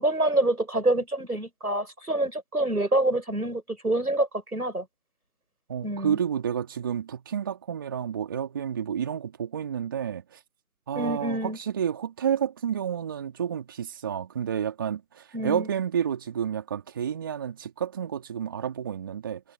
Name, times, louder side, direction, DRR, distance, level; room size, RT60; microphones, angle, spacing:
voice 1, 0.0-4.9 5.8-6.2 10.9-11.6 15.3-15.7, right 1 dB, 85° right, 7.3 m, -26 dB
voice 2, 5.7-10.4 10.9-19.4, right 8 dB, 15° right, 3.4 m, -30 dB
figure-of-eight pair, 165°, 44 cm